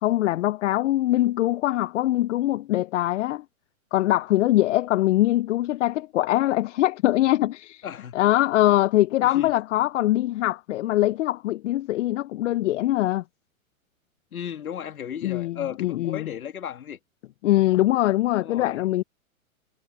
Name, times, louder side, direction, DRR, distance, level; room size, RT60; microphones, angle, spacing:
voice 1, 0.0-3.4 3.9-7.8 8.1-13.2 15.2-16.3 17.4-19.0, left 15 dB, 60° left, 0.6 m, -22 dB
voice 2, 7.8-8.2 9.2-9.5 14.3-17.0 18.4-18.8, left 9 dB, 80° left, 2.3 m, -35 dB
hypercardioid pair, 130°, 43 cm